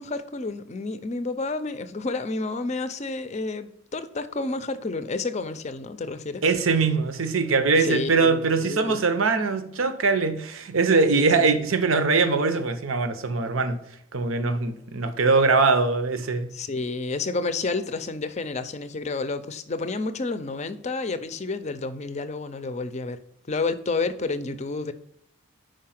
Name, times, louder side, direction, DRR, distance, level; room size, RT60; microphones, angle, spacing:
voice 1, 0.0-6.4 7.7-9.0 11.1-11.5 16.5-23.2 23.5-24.9, left 3 dB, 35° left, 0.5 m, -30 dB
voice 2, 6.4-13.8 14.1-16.5, right 4 dB, 80° right, 0.8 m, -22 dB
5.1 x 4.7 x 5.8 m
head